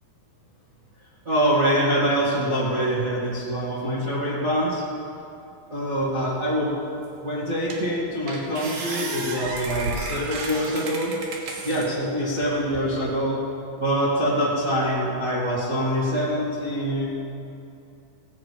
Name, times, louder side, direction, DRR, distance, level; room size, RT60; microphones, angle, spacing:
voice 1, 1.2-4.8 5.7-6.8 7.2-11.1 11.6-13.4 13.8-17.2, equal, 45° right, -9 dB, 1.0 m, -24 dB
sound 1, 7.0-7.1 7.7-7.9 8.3-11.9 12.4-13.1, right 2 dB, 60° right, 2.5 m, -33 dB
17.0 x 8.5 x 4.7 m, 2.7 s
omnidirectional pair, 5.4 m